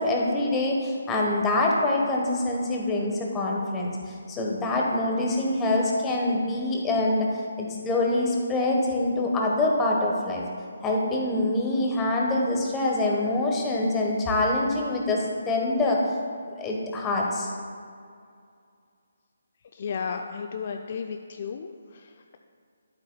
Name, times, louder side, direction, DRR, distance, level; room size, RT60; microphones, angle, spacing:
voice 1, 0.0-10.4 10.8-16.0 16.6-17.5, left 2 dB, 15° left, -1 dB, 1.1 m, -25 dB
voice 2, 19.7-22.4, left 6 dB, 45° left, 4 dB, 0.4 m, -34 dB
11.5 x 8.0 x 2.3 m, 2.3 s
figure-of-eight pair, 145°, 0 cm